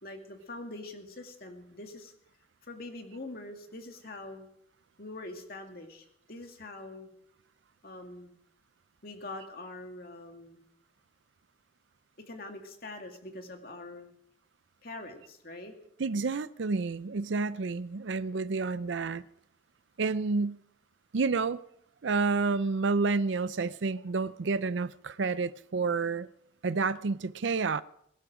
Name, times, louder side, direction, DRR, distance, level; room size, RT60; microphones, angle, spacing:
voice 1, 0.0-2.1 2.6-4.5 5.0-7.1 7.8-8.4 9.0-10.6 12.2-14.1 14.8-15.7, left 2 dB, 50° left, 2.2 m, -44 dB
voice 2, 16.0-19.2 20.0-20.6 21.1-21.6 22.0-26.3 26.6-27.8, right 4 dB, 75° right, 0.5 m, -29 dB
22.5 x 11.5 x 5.0 m
head